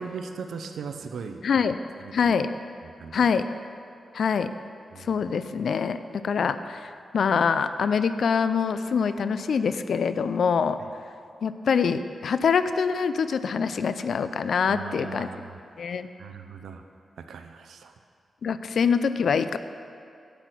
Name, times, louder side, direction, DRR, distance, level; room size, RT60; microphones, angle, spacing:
voice 1, 0.0-1.7 2.0-2.4 2.8-3.3 4.9-5.1 14.7-15.6 16.2-16.8 17.2-17.9, right 5 dB, 90° right, 7 dB, 0.7 m, -39 dB
voice 2, 1.4-1.8 2.1-2.5 3.1-3.5 4.1-4.5 5.0-10.8 11.4-15.3 15.8-16.1 18.4-19.6, left 6 dB, 75° left, 12 dB, 0.5 m, -24 dB
10.5 x 6.0 x 8.3 m, 2.4 s
cardioid pair, 90°, 0 cm